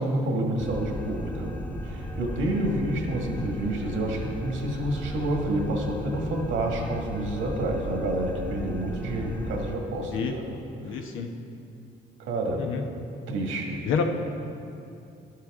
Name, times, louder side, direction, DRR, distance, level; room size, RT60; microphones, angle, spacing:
voice 1, 0.0-1.6 1.8-10.6 10.9-11.1 12.2-12.7 13.3-13.8, right 1 dB, 85° right, 1 dB, 1.8 m, -29 dB
sound 1, 0.6-9.8, left 1 dB, 10° left, 1.0 m, -36 dB
voice 2, 10.8-11.3 12.6-12.8 13.8-14.0, left 6 dB, 85° left, 4 dB, 1.0 m, -28 dB
11.5 x 10.5 x 3.6 m, 2.6 s
cardioid pair, 90°, 20 cm